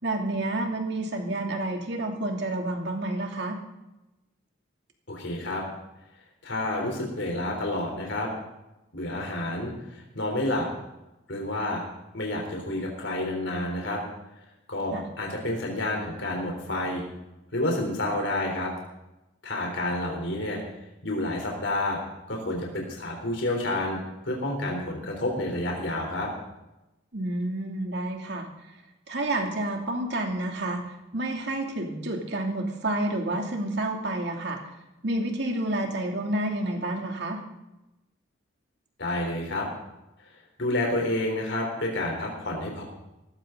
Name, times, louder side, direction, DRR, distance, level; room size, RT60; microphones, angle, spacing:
voice 1, 0.0-3.6 14.9-15.1 27.1-28.5 29.1-34.6 35.0-37.4, right 1 dB, 55° right, 2 dB, 2.7 m, -29 dB
voice 2, 5.1-5.6 6.4-8.3 8.9-10.6 11.3-11.8 12.1-14.0 14.7-17.0 17.5-18.7 19.4-20.6 21.0-22.0 22.3-24.0 24.2-26.3 39.0-39.7 40.6-42.8, left 1 dB, 65° left, 0 dB, 3.8 m, -29 dB
18.0 x 15.5 x 3.9 m, 0.97 s
head